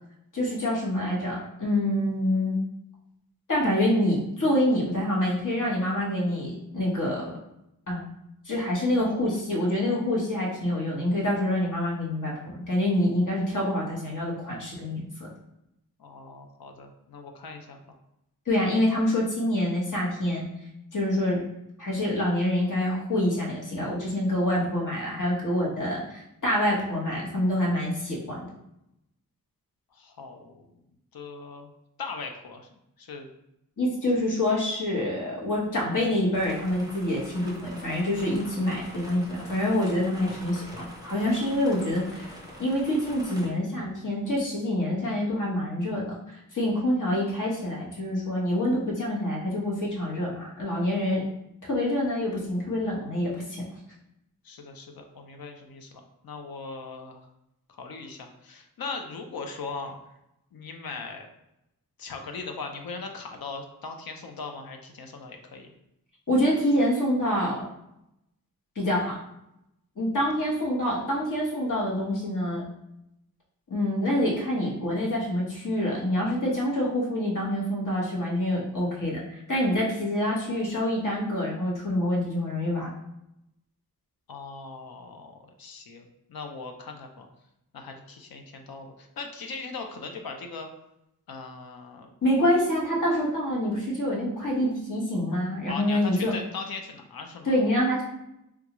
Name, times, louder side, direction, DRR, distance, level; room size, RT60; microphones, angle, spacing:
voice 1, 0.3-2.6 3.5-7.3 7.9-8.1 8.4-15.3 18.5-20.5 20.9-21.4 21.8-28.5 33.8-40.6 41.0-42.3 42.6-51.2 51.6-53.4 66.3-67.7 68.7-69.2 70.0-72.6 73.7-82.9 92.2-96.3 97.4-98.0, left 1 dB, 55° left, -4 dB, 1.1 m, -26 dB
voice 2, 16.0-17.8 29.9-30.8 31.1-31.7 32.0-32.7 33.0-33.3 54.4-57.3 57.7-60.0 60.5-61.3 62.0-65.7 84.3-87.3 87.7-90.7 91.3-92.1 95.7-97.5, left 4 dB, 75° left, 4 dB, 0.6 m, -39 dB
sound 1, 36.3-43.5, equal, 10° right, 0.6 m, -44 dB
3.5 x 2.3 x 2.9 m, 0.83 s
wide cardioid pair, 90°, 36 cm